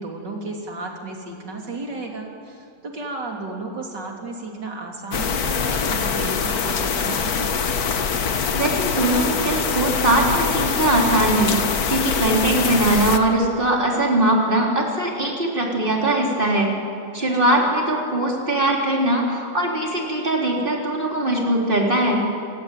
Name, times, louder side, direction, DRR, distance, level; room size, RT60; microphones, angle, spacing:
voice 1, 0.0-7.5 17.2-17.7, right 2 dB, 90° right, 1 dB, 3.9 m, -33 dB
sound 1, 5.1-13.2, left 6 dB, 60° left, 1.7 m, -23 dB
voice 2, 8.5-11.6 11.9-16.7 17.1-22.2, right 1 dB, 30° right, -1 dB, 4.2 m, -21 dB
29.0 x 17.0 x 9.3 m, 2.5 s
omnidirectional pair, 1.8 m